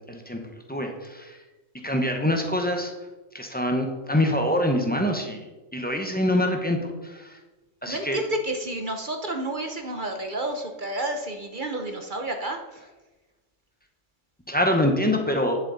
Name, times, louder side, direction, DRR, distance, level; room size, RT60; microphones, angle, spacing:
voice 1, 0.0-1.4 1.8-2.9 3.3-5.5 5.7-7.4 7.8-8.2 14.5-15.6, left 1 dB, 10° left, 3 dB, 0.9 m, -25 dB
voice 2, 7.9-12.9, right 1 dB, 45° right, 4 dB, 0.9 m, -30 dB
10.0 x 7.4 x 4.0 m, 1.2 s
omnidirectional pair, 1.4 m